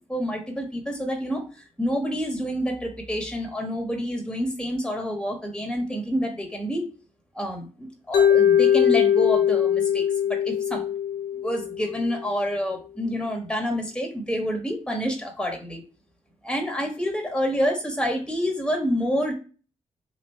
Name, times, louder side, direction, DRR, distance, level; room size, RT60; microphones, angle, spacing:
voice 1, 0.1-1.4 1.8-6.8 7.3-10.9 11.3-15.8 16.4-19.3, equal, 5° left, 2 dB, 1.5 m, -28 dB
Mallet percussion, 8.1-12.2, left 9 dB, 85° left, 0.5 m, -21 dB
3.1 x 2.8 x 4.4 m, 0.36 s
supercardioid pair, 45°, 14 cm